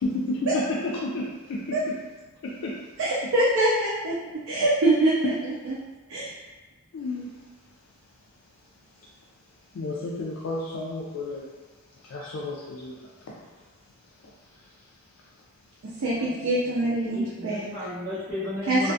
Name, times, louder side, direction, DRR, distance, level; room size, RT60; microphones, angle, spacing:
voice 1, 0.0-1.9 2.4-2.7 6.9-7.2 9.7-11.5 12.0-13.1 14.5-14.7, left 2 dB, 80° left, -4 dB, 0.4 m, -31 dB
voice 2, 3.0-5.7 6.1-6.3 15.8-17.7 18.7-18.9, right 1 dB, 75° right, -6 dB, 0.5 m, -24 dB
voice 3, 16.1-18.9, left 1 dB, 45° right, -15 dB, 0.9 m, -35 dB
2.4 x 2.3 x 2.5 m, 1.2 s
head